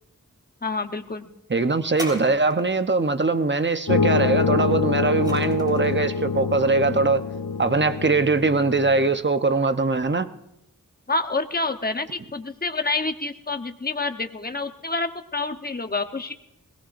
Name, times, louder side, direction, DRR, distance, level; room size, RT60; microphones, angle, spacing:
voice 1, 0.6-1.3 11.1-16.3, left 3 dB, 30° left, 1.1 m, -28 dB
voice 2, 1.5-7.2 7.6-10.3, right 3 dB, 35° right, 0.9 m, -21 dB
sound 1, 1.9-2.9 4.7-6.0 6.8-6.9, equal, 10° right, 3.1 m, -39 dB
sound 2, 3.9-9.1, left 5 dB, 85° left, 1.1 m, -25 dB
21.5 x 17.5 x 2.6 m
wide cardioid pair, 45°, 33 cm